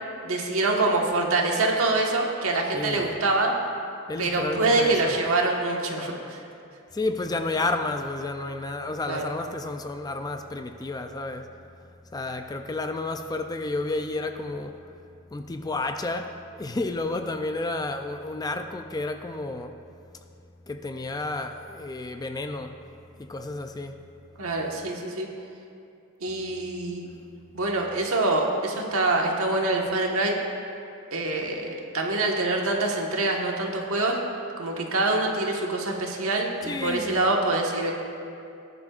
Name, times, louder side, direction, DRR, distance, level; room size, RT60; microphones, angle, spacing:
voice 1, 0.2-3.5 4.2-6.4 9.1-9.3 24.4-25.3 26.2-27.1 27.5-30.4 31.1-34.2 34.6-37.9, right 2 dB, 65° right, 1.5 m, -25 dB
voice 2, 2.7-3.1 4.1-4.9 6.9-11.5 12.1-14.8 15.3-19.7 20.7-22.8 23.2-24.0 36.7-37.3, left 2 dB, 20° left, 0.4 m, -31 dB
19.0 x 10.5 x 2.5 m
head